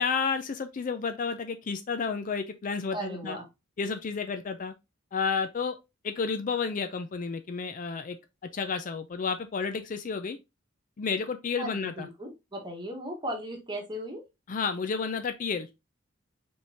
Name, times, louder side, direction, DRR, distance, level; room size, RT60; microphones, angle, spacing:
voice 1, 0.0-3.4 3.8-4.7 5.1-5.8 6.0-8.2 8.5-10.4 11.0-12.1 14.5-15.7, left 5 dB, 40° left, 0.4 m, -31 dB
voice 2, 2.9-3.5 11.6-14.2, equal, 25° right, 1.3 m, -37 dB
5.2 x 3.1 x 2.7 m
head